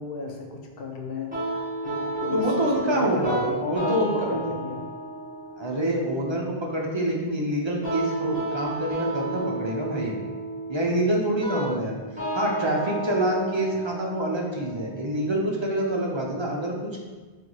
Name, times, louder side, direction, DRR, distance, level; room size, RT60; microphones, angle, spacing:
voice 1, 0.0-2.5 2.9-4.9, left 2 dB, 70° left, 1 dB, 0.7 m, -34 dB
sound 1, 1.3-16.3, right 2 dB, 10° right, 1.3 m, -33 dB
voice 2, 2.3-4.5 5.6-10.2 10.7-12.0 12.3-17.0, right 1 dB, 35° right, -1 dB, 0.5 m, -26 dB
4.5 x 2.5 x 3.9 m, 1.3 s
omnidirectional pair, 1.0 m